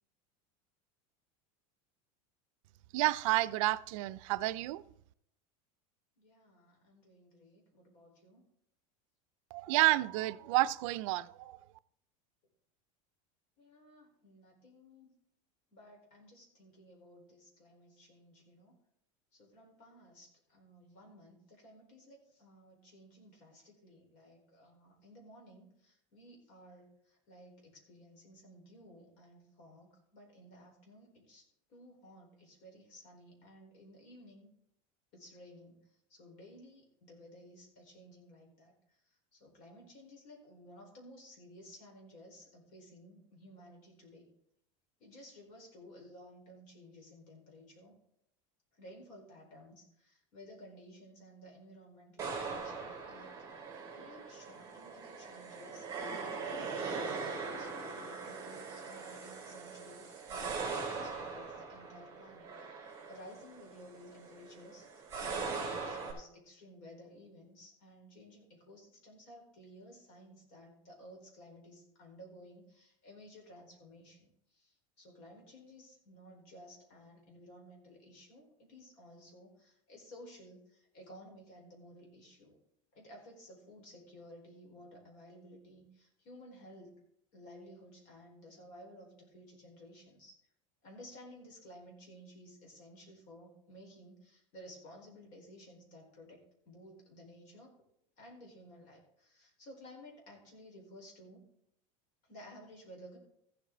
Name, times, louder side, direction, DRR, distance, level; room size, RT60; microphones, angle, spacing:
voice 1, 2.9-4.8 9.5-11.6, right 18 dB, 65° right, 0.5 m, -30 dB
voice 2, 6.2-8.4 13.6-15.1 15.7-18.8 19.3-34.5 35.1-44.3 45.0-48.0 48.7-53.3 53.9-82.6 82.9-87.0 87.3-90.4 90.8-96.4 96.7-97.8 98.2-101.4 102.2-103.2, equal, 50° left, 4.4 m, -55 dB
sound 1, 52.2-66.1, right 4 dB, 15° right, 3.8 m, -41 dB
15.0 x 8.0 x 3.9 m
supercardioid pair, 160°, 18 cm